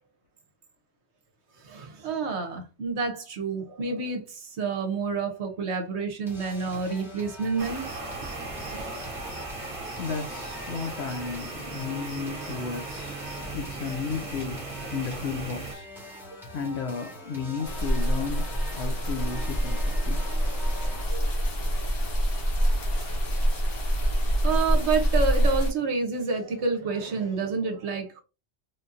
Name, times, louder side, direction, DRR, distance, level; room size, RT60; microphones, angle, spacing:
voice 1, 1.6-9.1 16.3-16.4 21.1-21.4 22.9-23.2 24.4-28.2, right 4 dB, 60° right, 0.9 m, -29 dB
sound 1, 6.3-21.0, equal, ahead, 1.1 m, -43 dB
sound 2, 7.6-15.7, right 3 dB, 35° right, 0.6 m, -37 dB
voice 2, 10.0-13.2 13.5-14.6 14.9-15.9 16.5-20.2, left 5 dB, 65° left, 0.7 m, -33 dB
sound 3, 17.6-25.7, equal, 45° left, 1.2 m, -25 dB
3.5 x 2.7 x 2.4 m
omnidirectional pair, 1.4 m